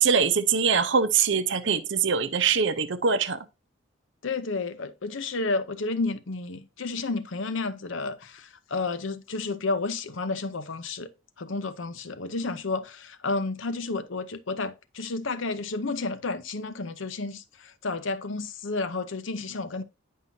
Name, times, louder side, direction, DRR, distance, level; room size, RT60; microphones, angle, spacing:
voice 1, 0.0-3.4, right 6 dB, 60° right, 0.7 m, -23 dB
voice 2, 4.2-11.1 11.4-19.8, left 3 dB, 65° left, 0.7 m, -31 dB
9.7 x 5.5 x 2.7 m
head